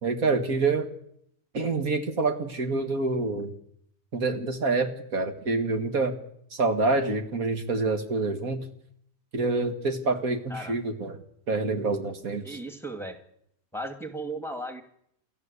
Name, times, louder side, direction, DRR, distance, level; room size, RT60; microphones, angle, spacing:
voice 1, 0.0-0.9 1.5-3.5 4.1-6.1 6.5-8.7 9.3-11.2 11.5-12.6, right 3 dB, 75° right, 7 dB, 2.3 m, -27 dB
voice 2, 12.4-13.2 13.7-14.8, right 1 dB, ahead, 5 dB, 2.2 m, -35 dB
29.0 x 12.5 x 8.3 m, 0.72 s
omnidirectional pair, 1.5 m